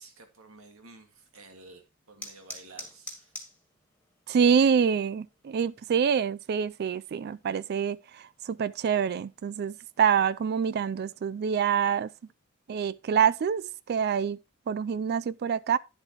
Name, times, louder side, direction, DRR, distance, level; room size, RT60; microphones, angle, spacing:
voice 1, 0.0-3.3, right 3 dB, 80° right, 1.8 m, -52 dB
sound 1, 1.2-12.3, left 1 dB, 5° left, 1.9 m, -51 dB
voice 2, 4.3-12.1 12.7-14.4 14.7-15.8, right 7 dB, 50° right, 0.3 m, -26 dB
10.0 x 7.3 x 2.9 m
head